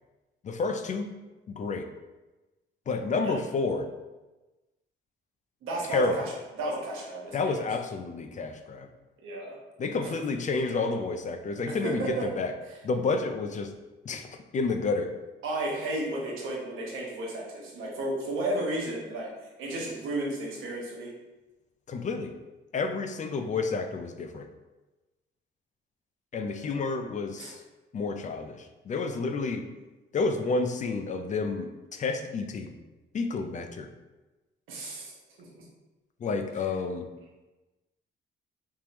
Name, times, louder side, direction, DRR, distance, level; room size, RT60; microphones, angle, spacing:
voice 1, 0.4-1.1 1.5-1.9 2.9-3.8 5.9-6.2 7.3-8.9 9.8-12.5 12.8-13.7 14.0-15.1 21.9-22.3 22.7-24.5 26.3-27.6 27.9-29.7 30.1-32.7 33.1-33.9 36.2-37.1, left 3 dB, 40° left, 6 dB, 0.4 m, -30 dB
voice 2, 5.6-6.2 6.6-7.6 9.2-9.5 10.0-10.1 11.8-12.3 15.4-19.3 19.6-21.1 26.5-26.8 27.4-27.5 34.7-35.1 35.4-35.6, right 1 dB, 90° right, -3 dB, 1.1 m, -33 dB
3.5 x 3.1 x 2.9 m, 1.1 s
cardioid pair, 90°, 20 cm